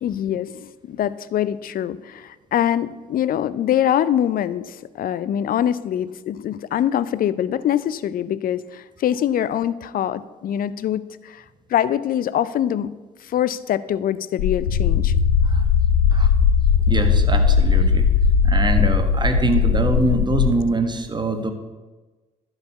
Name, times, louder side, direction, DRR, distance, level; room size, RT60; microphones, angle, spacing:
voice 1, 0.0-11.4 11.7-12.9 13.2-15.1, left 10 dB, 50° left, 17 dB, 0.5 m, -24 dB
sound 1, 14.4-20.5, left 6 dB, 80° left, 0.9 m, -18 dB
voice 2, 16.9-18.1 18.4-21.5, right 2 dB, 20° right, 6 dB, 1.5 m, -23 dB
11.0 x 4.8 x 6.7 m, 1.2 s
hypercardioid pair, 45°, 20 cm